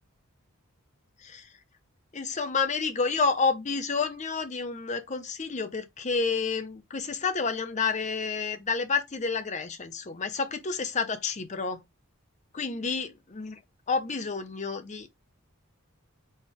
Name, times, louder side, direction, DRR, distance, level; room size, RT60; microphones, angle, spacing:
voice 1, 2.1-11.8 12.5-13.5 13.9-15.2, left 4 dB, 35° left, 0.6 m, -29 dB
4.2 x 3.4 x 3.4 m
head